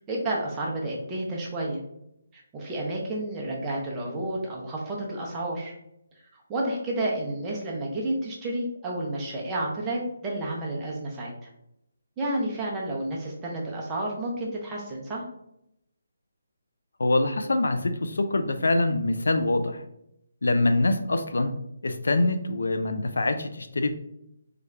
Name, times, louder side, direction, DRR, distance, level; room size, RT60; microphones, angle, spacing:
voice 1, 0.1-1.8 2.3-5.7 6.3-11.3 12.2-15.2, right 1 dB, 15° right, -3 dB, 0.6 m, -31 dB
voice 2, 17.0-19.8 20.4-24.0, left 2 dB, 80° left, 8 dB, 0.4 m, -25 dB
3.3 x 2.4 x 3.2 m, 0.80 s
hypercardioid pair, 165°, 0 cm